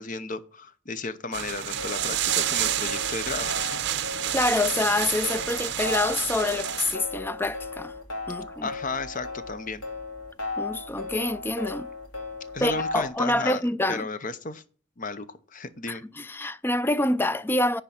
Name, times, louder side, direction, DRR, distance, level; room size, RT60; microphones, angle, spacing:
voice 1, 0.0-3.8 8.6-9.8 12.5-13.6 13.9-14.6 15.0-16.0, left 3 dB, 40° left, 0.8 m, -34 dB
sound 1, 1.3-7.0, right 11 dB, 60° right, 0.7 m, -29 dB
sound 2, 1.8-13.1, left 3 dB, 85° left, 2.5 m, -36 dB
voice 2, 4.3-7.9 8.3-8.7 10.6-11.9 12.6-14.1 15.9-17.8, left 2 dB, 10° left, 0.3 m, -26 dB
10.0 x 3.7 x 7.1 m
head